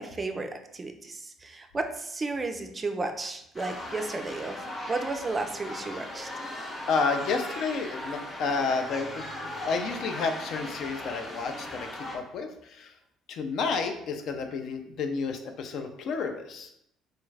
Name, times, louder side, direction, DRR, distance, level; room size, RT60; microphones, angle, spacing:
voice 1, 0.0-4.6 4.9-6.3, right 3 dB, 25° right, 6 dB, 0.4 m, -33 dB
sound 1, 3.5-12.2, left 1 dB, 30° left, 0.8 m, -38 dB
voice 2, 6.9-12.9 13.3-16.7, left 4 dB, 65° left, 6 dB, 0.4 m, -31 dB
3.2 x 2.4 x 3.2 m, 0.78 s
cardioid pair, 100°, 0 cm